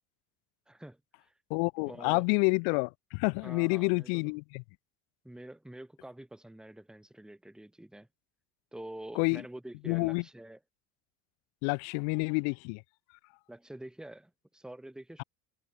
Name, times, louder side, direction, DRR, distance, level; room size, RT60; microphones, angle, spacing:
voice 1, 0.7-1.3 1.8-2.3 3.4-4.4 5.2-8.1 8.7-10.6 13.5-15.2, right 1 dB, ahead, 1.3 m, -47 dB
voice 2, 1.5-4.6 9.2-9.4 9.9-10.2 11.6-12.8, left 40 dB or more, 80° left, 0.6 m, -29 dB
cardioid pair, 145°, 37 cm